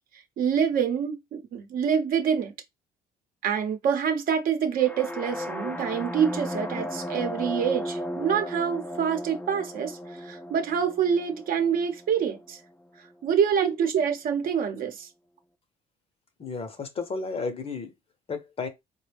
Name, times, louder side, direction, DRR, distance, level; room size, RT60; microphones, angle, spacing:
voice 1, 0.4-2.5 3.4-12.6 13.2-15.1, right 7 dB, 60° right, 0.8 m, -26 dB
sound 1, 4.8-12.7, left 1 dB, 10° left, 0.5 m, -35 dB
voice 2, 16.4-17.9 18.3-18.7, left 4 dB, 35° left, 0.8 m, -32 dB
3.9 x 2.2 x 3.4 m
cardioid pair, 110°, 17 cm